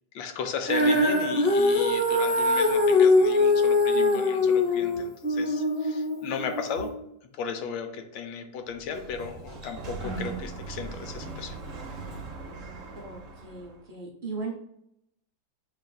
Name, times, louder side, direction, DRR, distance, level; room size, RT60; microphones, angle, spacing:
voice 1, 0.1-6.9 7.3-11.6, left 6 dB, 80° left, 6 dB, 1.3 m, -35 dB
Female singing, 0.7-6.9, left 2 dB, 45° left, 0.9 m, -22 dB
voice 2, 3.9-5.0 12.9-14.5, right 3 dB, 80° right, -4 dB, 0.4 m, -39 dB
Sliding door, 8.6-13.8, right 3 dB, 55° right, 1.0 m, -39 dB
6.7 x 2.4 x 2.3 m, 0.80 s
omnidirectional pair, 2.0 m